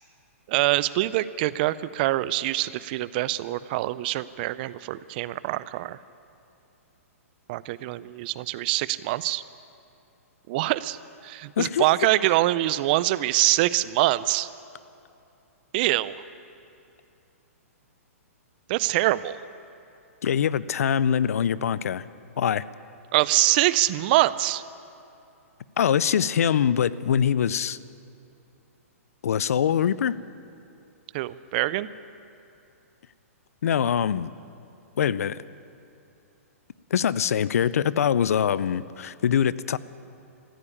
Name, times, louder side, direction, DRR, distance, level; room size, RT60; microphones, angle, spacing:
voice 1, 0.5-6.0 7.5-9.4 10.5-11.0 11.2-14.5 15.7-16.1 18.7-19.4 23.1-24.6 31.1-31.9, right 17 dB, 40° right, 17 dB, 0.4 m, -24 dB
voice 2, 11.6-11.9 20.2-22.0 22.4-22.6 25.8-27.8 29.2-30.2 33.6-34.3 35.0-35.4 36.9-39.8, left 8 dB, 75° left, 18 dB, 0.5 m, -23 dB
14.5 x 8.9 x 9.9 m, 2.7 s
hypercardioid pair, 140°, 8 cm